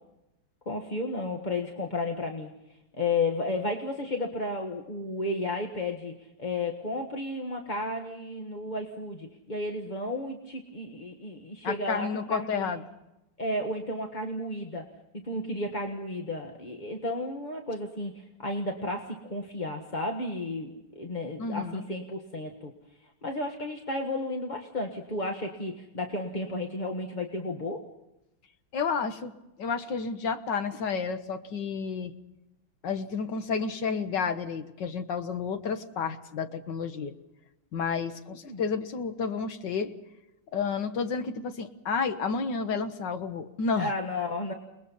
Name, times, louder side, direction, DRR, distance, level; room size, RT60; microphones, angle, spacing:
voice 1, 0.6-2.5 3.0-12.8 13.4-14.8 15.1-22.7 23.0-27.8 38.4-38.6 43.7-44.5, left 2 dB, 25° left, 2 dB, 1.3 m, -33 dB
voice 2, 11.6-12.8 21.4-21.8 28.7-29.3 29.6-32.1 32.8-37.1 37.7-39.9 40.5-43.9, left 5 dB, 55° left, 9 dB, 1.8 m, -31 dB
29.0 x 20.5 x 5.5 m, 0.92 s
omnidirectional pair, 2.4 m